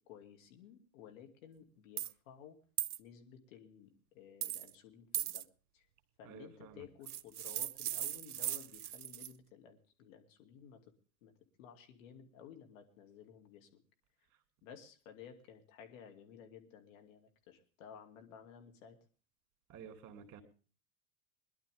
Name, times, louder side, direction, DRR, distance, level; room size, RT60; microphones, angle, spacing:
voice 1, 0.1-2.6 3.0-5.5 5.7-5.9 6.2-10.8 11.2-11.3 11.6-13.7 14.6-19.0, left 8 dB, 60° left, 4 dB, 2.6 m, -55 dB
sound 1, 2.0-2.1 2.8-3.0 4.4-4.7 5.1-5.4 7.1-9.3, right 12 dB, 75° right, 0.6 m, -38 dB
voice 2, 6.2-6.9 19.7-20.4, right 7 dB, 40° right, 7 dB, 3.1 m, -52 dB
21.5 x 11.5 x 3.6 m, 0.40 s
figure-of-eight pair, 90°, 46 cm